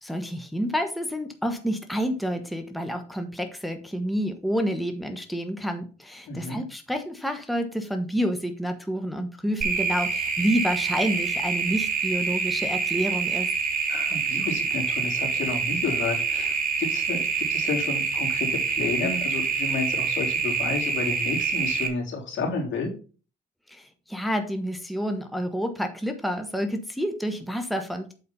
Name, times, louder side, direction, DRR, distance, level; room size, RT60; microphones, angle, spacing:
voice 1, 0.0-13.5 23.7-28.1, equal, ahead, 6 dB, 1.2 m, -29 dB
voice 2, 6.3-6.6 13.9-22.9, left 4 dB, 70° left, 0 dB, 3.4 m, -31 dB
sound 1, 9.6-21.9, right 5 dB, 45° right, 2.2 m, -26 dB
8.2 x 4.3 x 5.5 m, 0.36 s
cardioid pair, 90°, 20 cm